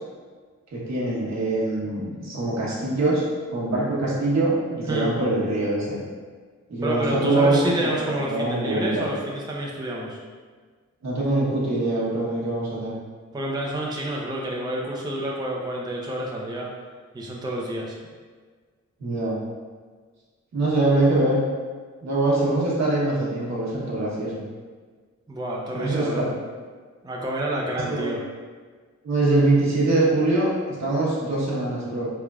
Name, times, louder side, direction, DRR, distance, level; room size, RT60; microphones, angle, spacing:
voice 1, 0.7-3.2 3.5-6.0 6.7-9.1 11.0-12.9 19.0-19.4 20.5-21.4 22.0-24.4 25.7-26.2 27.9-28.1 29.0-32.1, right 2 dB, 65° right, -6 dB, 1.1 m, -23 dB
voice 2, 6.8-10.2 13.3-16.7 17.1-18.0 25.3-26.3 27.0-28.2, right 1 dB, 15° right, -3 dB, 0.6 m, -29 dB
3.6 x 3.3 x 2.3 m, 1.5 s
cardioid pair, 60°, 29 cm